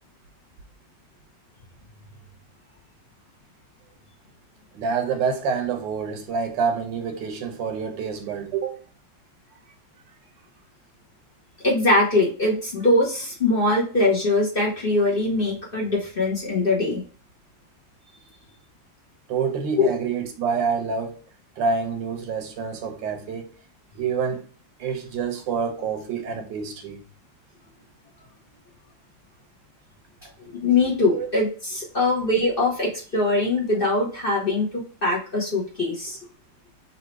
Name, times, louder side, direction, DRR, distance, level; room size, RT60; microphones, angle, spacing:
voice 1, 4.7-8.8 19.3-21.2 21.6-23.5 23.9-24.4 24.8-27.0 30.2-30.3 31.1-31.3, right 5 dB, 75° right, 1.5 m, -27 dB
voice 2, 11.6-17.0 19.8-19.9 30.5-36.2, left 2 dB, 35° left, 1.1 m, -22 dB
4.1 x 2.8 x 4.5 m
omnidirectional pair, 2.0 m